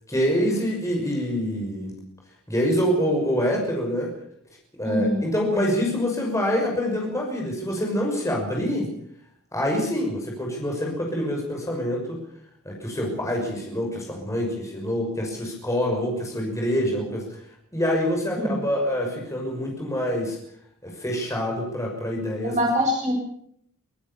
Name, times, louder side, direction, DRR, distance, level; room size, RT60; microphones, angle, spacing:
voice 1, 0.1-2.0 2.5-4.1 4.8-8.9 9.5-12.2 12.6-17.4 17.7-20.4 20.8-22.6, equal, 15° left, 0 dB, 6.1 m, -26 dB
voice 2, 4.8-5.2 18.4-18.5 22.4-23.1, equal, 35° right, 0 dB, 7.6 m, -23 dB
25.0 x 15.5 x 7.1 m, 0.66 s
head